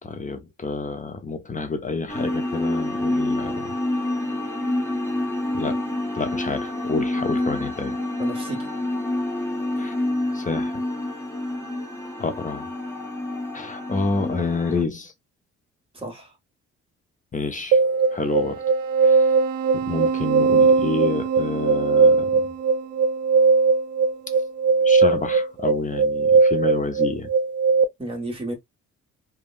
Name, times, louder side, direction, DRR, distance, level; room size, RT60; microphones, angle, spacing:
voice 1, 0.0-3.7 5.5-5.8 6.1-8.0 9.8-9.9 10.3-10.8 12.2-12.7 13.5-15.1 17.3-17.8 18.1-18.6 19.0-19.2 19.7-22.4 24.8-27.3, left 3 dB, 25° left, 0.7 m, -28 dB
sound 1, 2.1-14.8, left 1 dB, 10° left, 1.2 m, -27 dB
voice 2, 8.2-8.7 15.9-16.3 28.0-28.5, right 1 dB, 20° right, 1.6 m, -32 dB
sound 2, 17.7-27.8, right 4 dB, 75° right, 0.6 m, -19 dB
3.4 x 2.3 x 2.5 m
cardioid pair, 90°, 30 cm